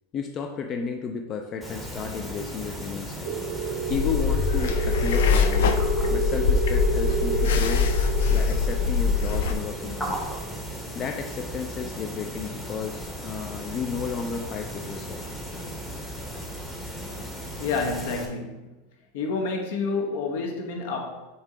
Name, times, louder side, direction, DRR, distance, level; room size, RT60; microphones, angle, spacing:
voice 1, 0.1-3.3 3.9-5.8 6.1-7.9 8.3-10.3 10.9-15.2, left 6 dB, 25° left, 3 dB, 0.4 m, -33 dB
sound 1, 1.6-18.3, equal, 5° left, 0.8 m, -36 dB
sound 2, 3.3-11.6, right 5 dB, 55° right, 0.6 m, -31 dB
sound 3, 3.9-9.5, left 6 dB, 85° left, 0.6 m, -23 dB
voice 2, 17.6-18.7 19.1-21.3, left 4 dB, 65° left, 2 dB, 1.1 m, -29 dB
7.0 x 2.8 x 4.9 m, 1.1 s
supercardioid pair, 165°, 0 cm